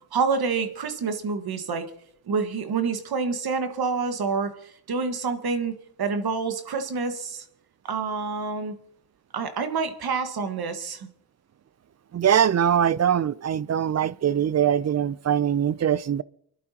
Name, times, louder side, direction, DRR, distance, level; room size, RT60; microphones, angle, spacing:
voice 1, 0.1-1.9 2.3-7.4 7.8-8.7 9.3-11.1, right 5 dB, 65° right, 1.6 m, -27 dB
voice 2, 12.1-16.2, right 9 dB, 40° right, 0.5 m, -22 dB
29.0 x 11.5 x 2.8 m
supercardioid pair, 55°, 40 cm